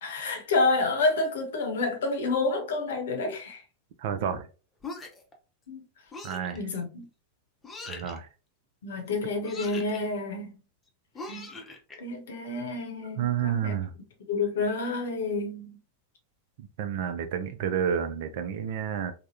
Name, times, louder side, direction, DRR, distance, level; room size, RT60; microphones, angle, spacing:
voice 1, 0.0-3.6 5.7-5.8 6.5-7.1 8.8-10.5 11.3-11.5 12.0-13.8 14.3-15.8, left 3 dB, 60° left, 0.8 m, -29 dB
voice 2, 4.0-4.5 6.2-6.6 7.9-8.3 13.2-13.9 16.8-19.1, right 8 dB, 50° right, 0.4 m, -30 dB
sound 1, 4.8-5.3 6.1-6.6 7.6-8.2 9.4-10.0 11.1-12.0, left 3 dB, 15° left, 0.7 m, -41 dB
3.4 x 2.1 x 2.6 m
figure-of-eight pair, 90°, 0 cm